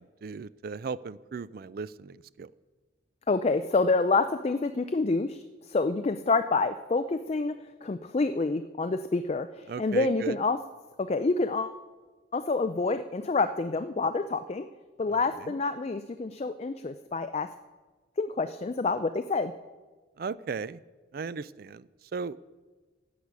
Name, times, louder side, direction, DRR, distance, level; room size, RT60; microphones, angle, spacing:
voice 1, 0.0-2.5 9.7-10.4 15.1-15.5 20.2-20.8 21.1-22.5, right 5 dB, 50° right, 18 dB, 0.3 m, -37 dB
voice 2, 3.3-7.5 7.8-10.6 11.0-11.8 12.3-14.7 15.0-17.5 18.2-19.5, left 3 dB, 35° left, 10 dB, 0.3 m, -27 dB
14.5 x 8.3 x 6.1 m, 1.3 s
head